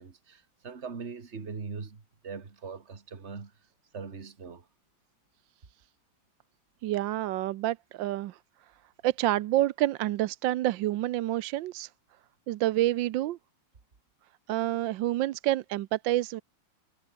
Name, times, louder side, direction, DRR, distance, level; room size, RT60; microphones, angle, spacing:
voice 1, 0.0-3.5 3.9-4.7, right 5 dB, 35° right, 2.2 m, -41 dB
voice 2, 6.8-8.4 9.0-11.9 12.5-13.4 14.5-16.4, right 14 dB, 80° right, 1.4 m, -28 dB
omnidirectional pair, 2.1 m